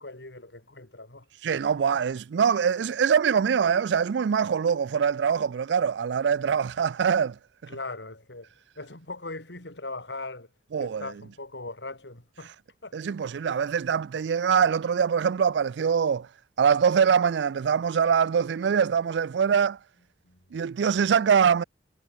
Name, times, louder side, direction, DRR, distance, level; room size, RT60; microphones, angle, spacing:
voice 1, 0.0-1.3 1.5-1.6 1.9-2.0 7.7-8.5 8.7-10.5 10.8-12.5 12.8-13.0 20.2-20.6, left 2 dB, 90° left, 5.0 m, -40 dB
voice 2, 1.4-7.4 10.7-11.1 12.9-16.3 16.6-19.8 20.5-21.6, right 7 dB, 85° right, 0.4 m, -23 dB
head